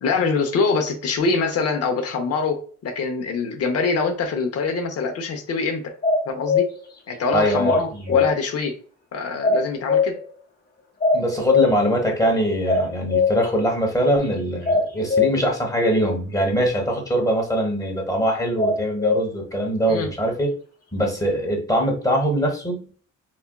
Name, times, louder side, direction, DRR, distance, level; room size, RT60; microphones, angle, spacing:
voice 1, 0.0-5.9 6.2-6.7 7.1-8.7 9.1-10.1 19.9-20.1, left 4 dB, 55° left, 4 dB, 0.8 m, -24 dB
sound 1, 6.0-6.7 7.6-8.3 9.4-10.2 11.0-11.7 12.7-13.4 14.7-15.3 18.6-19.2, left 4 dB, 30° left, 1.1 m, -19 dB
voice 2, 7.3-8.2 11.1-20.5 20.9-22.8, equal, 10° left, 1 dB, 1.2 m, -22 dB
4.2 x 2.2 x 2.2 m, 0.42 s
cardioid pair, 90°, 30 cm